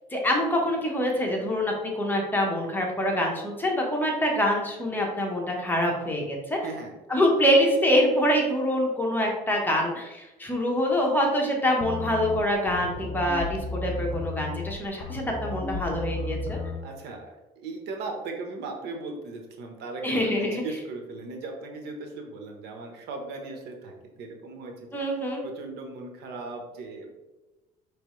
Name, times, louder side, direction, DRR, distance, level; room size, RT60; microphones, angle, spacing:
voice 1, 0.1-6.6 7.1-16.6 20.0-20.6 24.9-25.4, equal, 10° left, -1 dB, 1.1 m, -25 dB
sound 1, 11.8-16.8, left 3 dB, 60° left, 0.7 m, -34 dB
voice 2, 16.8-24.7 25.4-27.1, right 3 dB, 80° right, 2 dB, 0.9 m, -38 dB
5.3 x 3.2 x 3.1 m, 1.1 s
cardioid pair, 110°, 17 cm